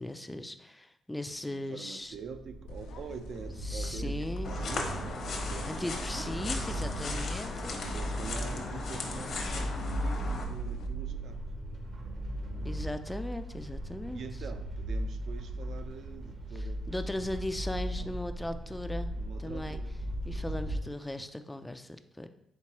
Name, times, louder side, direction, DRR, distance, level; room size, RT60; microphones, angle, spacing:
voice 1, 0.0-2.2 3.6-4.6 5.6-7.7 12.6-14.2 16.5-19.1 19.4-19.8 20.3-22.3, left 1 dB, 10° left, 9 dB, 0.3 m, -38 dB
voice 2, 1.5-5.8 6.1-6.9 7.7-11.4 14.1-16.8 17.9-18.2 19.2-19.9 20.7-20.8, right 6 dB, 65° right, 8 dB, 0.4 m, -46 dB
sound 1, 2.1-20.8, right 1 dB, 45° right, 0.7 m, -37 dB
sound 2, 2.7-10.9, left 3 dB, 85° left, 0.4 m, -49 dB
sound 3, 4.4-10.4, left 3 dB, 60° left, 0.9 m, -37 dB
4.5 x 3.7 x 2.9 m, 0.78 s
cardioid pair, 90°, 0 cm